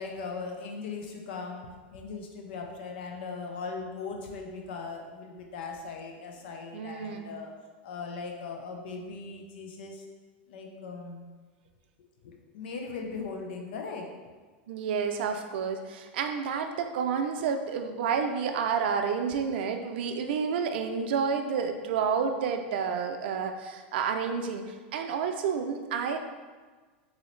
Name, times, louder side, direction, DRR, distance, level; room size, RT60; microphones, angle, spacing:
voice 1, 0.0-10.1 10.5-11.2 12.2-14.1, left 4 dB, 75° left, 2 dB, 0.6 m, -39 dB
voice 2, 6.7-7.3 14.7-24.6 24.9-26.2, right 6 dB, 75° right, 5 dB, 0.4 m, -30 dB
3.9 x 2.7 x 3.1 m, 1.4 s
hypercardioid pair, 115°, 6 cm